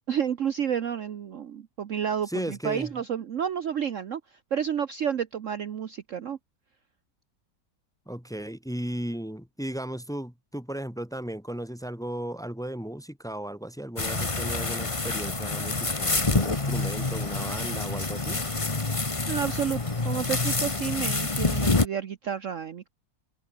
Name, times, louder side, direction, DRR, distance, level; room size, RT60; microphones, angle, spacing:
voice 1, 0.1-4.2 4.5-6.4 19.3-22.9, right 8 dB, 55° right, 1.1 m, -30 dB
voice 2, 2.3-2.9 8.1-18.4, right 1 dB, ahead, 1.9 m, -35 dB
sound 1, 14.0-21.8, left 3 dB, 20° left, 1.5 m, -27 dB
omnidirectional pair, 1.8 m